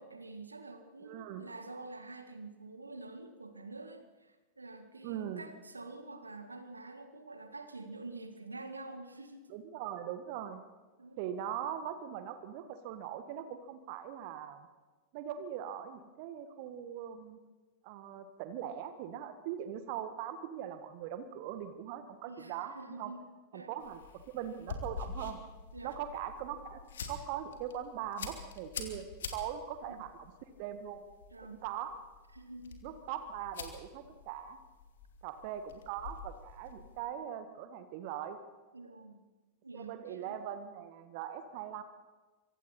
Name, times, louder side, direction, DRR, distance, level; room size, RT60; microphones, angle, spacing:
voice 1, 0.0-9.5 11.0-11.2 22.3-23.2 23.5-23.7 25.7-26.0 29.9-30.0 31.3-31.6 32.3-32.8 38.7-39.2 39.6-40.4, right 2 dB, 80° right, 8 dB, 1.8 m, -47 dB
voice 2, 1.0-1.4 5.0-5.4 9.5-10.6 11.2-14.7 15.1-17.4 17.8-23.1 23.5-25.4 25.8-29.1 29.3-31.0 31.5-31.9 32.8-34.6 35.2-38.4 39.7-41.8, right 10 dB, 45° right, 9 dB, 1.6 m, -41 dB
sound 1, 23.8-37.0, left 5 dB, 65° left, 2.7 m, -47 dB
25.5 x 24.0 x 4.4 m, 1.2 s
figure-of-eight pair, 90°, 0 cm